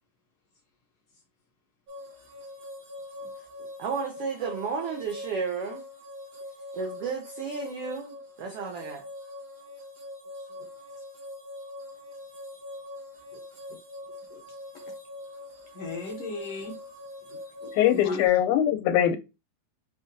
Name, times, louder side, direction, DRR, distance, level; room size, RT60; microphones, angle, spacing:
sound 1, 1.9-18.3, left 1 dB, 45° right, 1.3 m, -43 dB
voice 1, 3.8-5.8 6.7-9.0, right 5 dB, 90° right, 1.3 m, -33 dB
voice 2, 15.7-16.8 17.6-18.2, left 3 dB, 70° left, 1.5 m, -36 dB
voice 3, 17.8-19.2, left 11 dB, 85° left, 2.0 m, -22 dB
5.3 x 2.4 x 2.6 m
omnidirectional pair, 3.5 m